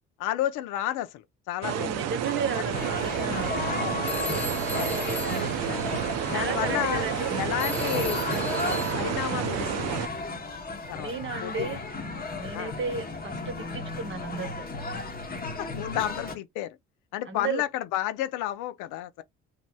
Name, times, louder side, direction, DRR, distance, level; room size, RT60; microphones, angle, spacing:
voice 1, 0.2-1.9 2.6-2.7 3.8-3.9 4.7-5.0 5.7-5.9 6.3-7.1 7.3-8.2 8.9-10.0 10.9-11.1 11.4-11.8 12.5-12.7 15.6-16.8 17.1-19.2, left 13 dB, 80° left, 0.5 m, -31 dB
sound 1, 1.6-10.1, right 10 dB, 60° right, 0.5 m, -31 dB
voice 2, 1.7-3.6 6.3-7.3 11.0-14.6 17.3-17.6, right 5 dB, 40° right, 0.9 m, -34 dB
sound 2, 2.7-16.4, left 3 dB, 30° left, 0.9 m, -34 dB
Telephone, 4.0-6.4 7.6-9.3, left 1 dB, 5° left, 0.5 m, -36 dB
2.9 x 2.8 x 2.2 m
supercardioid pair, 85°, 30 cm